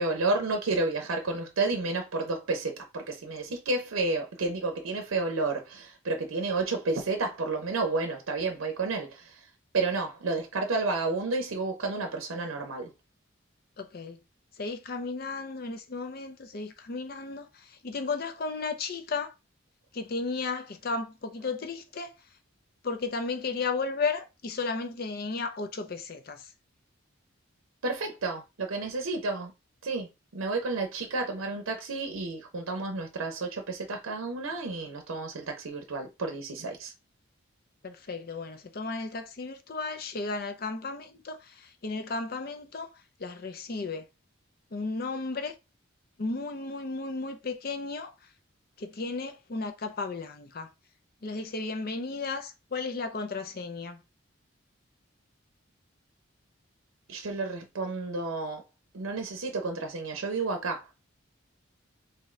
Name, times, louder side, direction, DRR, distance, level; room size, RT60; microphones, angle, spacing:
voice 1, 0.0-9.4 9.7-12.9 27.8-29.5 29.8-36.9 57.1-58.6 58.9-60.8, right 3 dB, 85° right, 0.6 m, -31 dB
voice 2, 13.8-14.2 14.6-19.3 19.9-22.1 22.8-26.4 37.8-42.9 43.2-44.1 44.7-45.5 46.2-48.1 48.8-50.7 51.2-54.0, left 4 dB, 45° left, 0.5 m, -34 dB
3.7 x 2.7 x 3.1 m
head